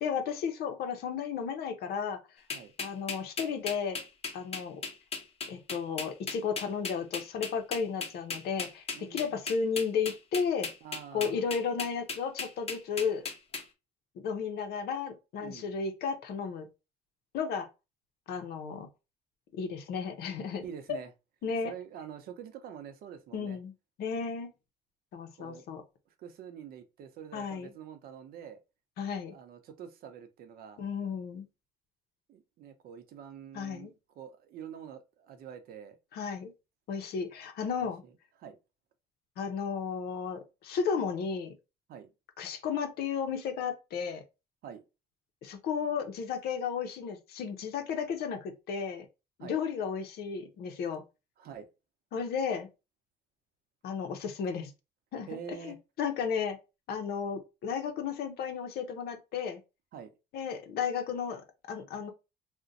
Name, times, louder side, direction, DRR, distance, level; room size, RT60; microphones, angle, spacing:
voice 1, 0.0-2.2 2.8-4.0 4.3-4.8 5.5-8.8 9.1-10.7 11.1-13.2 14.2-16.7 17.3-17.7 18.3-18.9 19.5-20.6 21.4-21.7 23.3-23.7 24.0-24.5 25.1-25.8 27.3-27.7 29.0-29.3 30.8-31.5 33.5-33.9 36.1-36.5 36.9-38.0 39.4-41.5 42.4-44.2 45.4-49.1 49.4-51.0 52.1-52.7 53.8-54.7 55.1-55.3 55.6-56.6 56.9-59.6 60.3-61.4 61.7-62.1, left 6 dB, 70° left, 0.6 m, -33 dB
sound 1, 2.5-13.6, left 4 dB, 35° left, 0.8 m, -36 dB
voice 2, 8.9-9.4 10.8-11.4 15.4-15.7 20.6-21.1 21.6-23.6 25.4-25.6 26.1-28.6 29.3-30.8 32.3-36.0 37.8-38.1 38.4-38.6 41.9-42.1 44.6-44.8 49.4-49.6 51.4-51.7 55.3-55.8 59.9-60.1, right 8 dB, 65° right, 0.6 m, -46 dB
2.5 x 2.1 x 3.8 m
cardioid pair, 110°, 17 cm